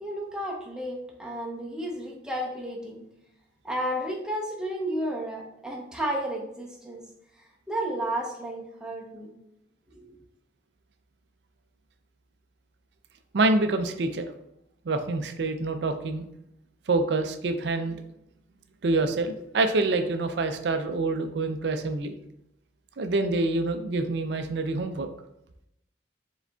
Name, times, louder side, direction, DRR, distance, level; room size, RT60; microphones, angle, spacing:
voice 1, 0.0-3.0 3.6-7.0 7.7-9.3 9.9-10.0, right 1 dB, 5° right, -2 dB, 0.7 m, -32 dB
voice 2, 13.3-14.3 14.8-16.2 16.9-18.0 18.8-22.1 23.0-25.1, right 3 dB, 75° right, 7 dB, 0.4 m, -26 dB
4.8 x 3.9 x 2.3 m, 0.81 s
head